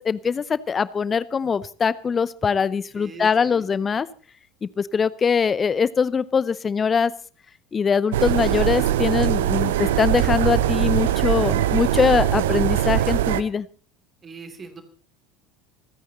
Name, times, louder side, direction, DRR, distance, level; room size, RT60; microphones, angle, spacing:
voice 1, 0.0-4.1 4.6-7.1 7.7-13.7, left 6 dB, 25° left, 19 dB, 0.7 m, -22 dB
voice 2, 3.0-3.7 14.2-14.8, right 4 dB, 25° right, 7 dB, 2.9 m, -40 dB
sound 1, 8.1-13.4, right 12 dB, 65° right, 0.7 m, -21 dB
27.5 x 9.4 x 4.1 m, 0.40 s
figure-of-eight pair, 70°, 0 cm